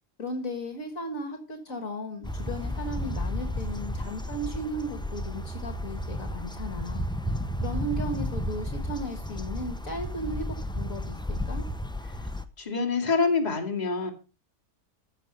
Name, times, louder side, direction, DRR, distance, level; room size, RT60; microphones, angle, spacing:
voice 1, 0.2-7.1 7.6-11.6, equal, 60° left, 2.0 m, -36 dB
sound 1, 2.2-12.4, equal, 5° left, 0.4 m, -33 dB
voice 2, 12.6-14.1, left 4 dB, 25° left, 2.6 m, -26 dB
15.0 x 6.6 x 5.4 m
omnidirectional pair, 1.7 m